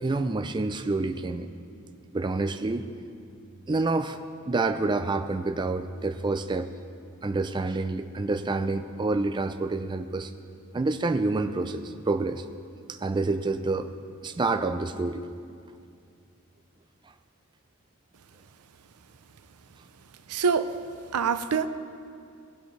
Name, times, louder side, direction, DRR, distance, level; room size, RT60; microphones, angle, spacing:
voice 1, 0.0-1.5 2.1-2.9 3.7-4.2 4.5-6.7 7.2-10.3 10.7-12.4 12.9-13.9 14.2-15.2, right 3 dB, 20° right, 8 dB, 0.3 m, -28 dB
voice 2, 20.3-20.7 21.1-21.7, right 6 dB, 85° right, 11 dB, 0.6 m, -24 dB
21.0 x 7.9 x 3.2 m, 2.4 s
head